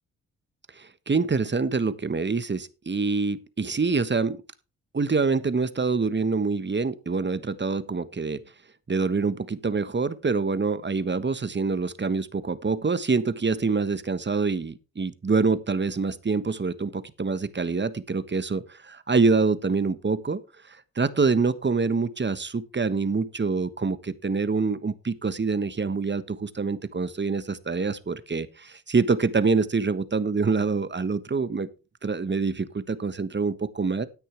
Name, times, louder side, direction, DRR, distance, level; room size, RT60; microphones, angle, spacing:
voice 1, 0.7-4.4 4.9-8.4 8.9-20.4 20.7-31.7 32.0-34.1, right 4 dB, 30° right, 1.3 m, -26 dB
13.0 x 9.9 x 3.5 m
hypercardioid pair, 40°, 37 cm